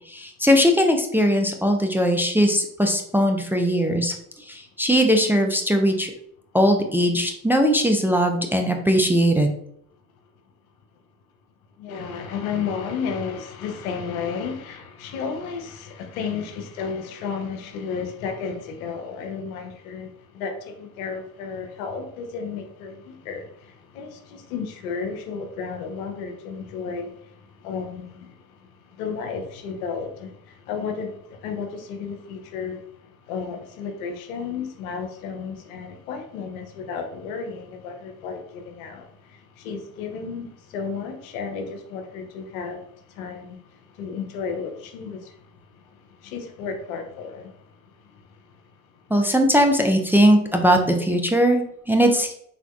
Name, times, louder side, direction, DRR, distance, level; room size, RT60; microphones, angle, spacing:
voice 1, 0.1-6.1 6.5-9.5 49.1-52.3, equal, 5° right, 0.3 m, -20 dB
voice 2, 11.8-27.2 27.6-28.4 29.0-32.8 33.3-43.6 43.9-45.4 46.2-47.5, left 5 dB, 85° left, 0.6 m, -33 dB
3.5 x 2.5 x 2.3 m
hypercardioid pair, 55°, 41 cm